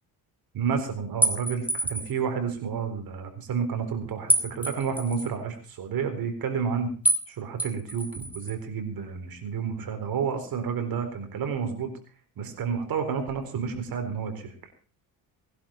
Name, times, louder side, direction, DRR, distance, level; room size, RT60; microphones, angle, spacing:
voice 1, 0.5-6.9 7.3-11.9 12.4-14.5, right 6 dB, 60° right, 6 dB, 4.1 m, -30 dB
sound 1, 1.2-2.2 4.3-5.3 7.0-7.3 7.6-8.5, right 1 dB, 5° right, 2.6 m, -27 dB
20.0 x 11.5 x 4.4 m, 0.38 s
cardioid pair, 105°, 39 cm